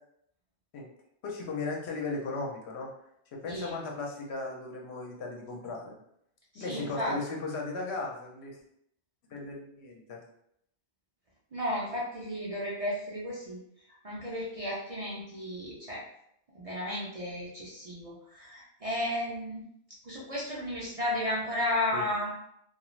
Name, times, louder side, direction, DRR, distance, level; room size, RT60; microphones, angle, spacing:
voice 1, 1.2-2.9 3.3-5.9 6.5-8.6 9.3-10.2 21.9-22.1, left 3 dB, 75° left, 0 dB, 0.9 m, -36 dB
voice 2, 3.4-3.8 6.5-7.2 11.5-13.6 14.0-16.0 16.5-19.7 20.0-22.3, left 1 dB, 40° right, -6 dB, 0.5 m, -33 dB
2.4 x 2.3 x 3.0 m, 0.73 s
omnidirectional pair, 1.1 m